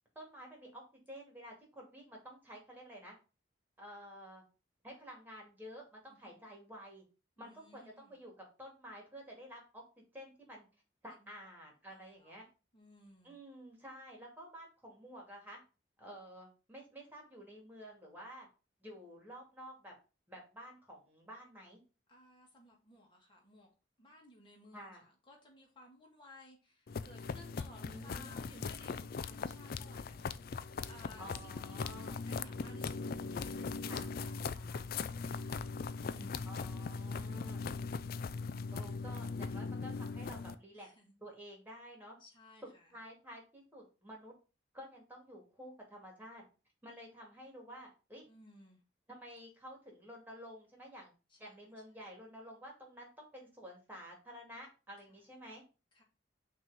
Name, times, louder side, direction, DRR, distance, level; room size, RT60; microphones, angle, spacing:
voice 1, 0.1-3.1 3.8-4.4 4.8-7.0 7.4-10.7 11.0-12.5 13.2-15.6 16.0-18.5 18.8-19.9 20.3-21.8 24.7-25.0 27.8-28.6 31.2-32.2 33.9-34.1 36.4-37.6 38.7-40.9 41.2-42.2 42.6-44.3 44.7-46.4 46.8-48.2 49.1-51.1 51.4-55.6, equal, 10° right, 0 dB, 2.3 m, -51 dB
voice 2, 6.1-6.5 7.4-8.2 11.2-11.3 11.9-12.4 12.7-13.4 22.1-23.7 24.0-35.6 36.0-36.5 37.3-37.6 40.7-41.1 42.2-42.9 48.3-48.8 51.3-51.6 55.9-56.0, left 1 dB, 25° left, 0 dB, 1.9 m, -58 dB
sound 1, 26.9-40.6, left 4 dB, 55° left, 0.4 m, -40 dB
6.1 x 3.1 x 5.4 m, 0.32 s
head